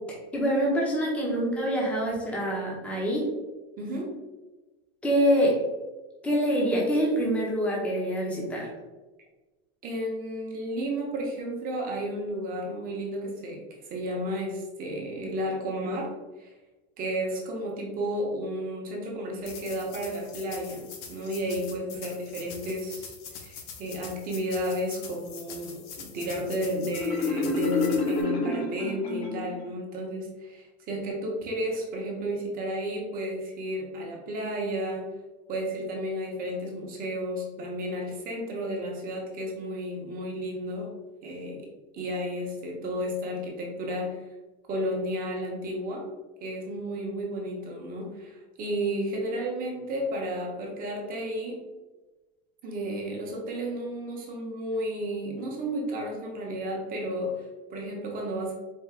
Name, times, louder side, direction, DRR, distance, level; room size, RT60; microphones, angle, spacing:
voice 1, 0.3-3.2 5.0-5.5 6.2-8.7, equal, 5° left, -3 dB, 0.6 m, -25 dB
voice 2, 3.8-4.1 9.8-16.1 16.4-16.5 17.0-23.1 23.4-35.1 35.5-40.9 41.2-41.7 41.9-44.2 44.7-46.0 46.4-51.6 52.6-58.6, equal, 25° right, -1 dB, 0.8 m, -32 dB
sound 1, 19.4-28.2, left 6 dB, 40° left, 0.6 m, -44 dB
Marimba xylophone, 26.9-29.7, left 3 dB, 85° left, 1.4 m, -28 dB
4.4 x 2.5 x 3.6 m, 1.2 s
cardioid pair, 175°, 32 cm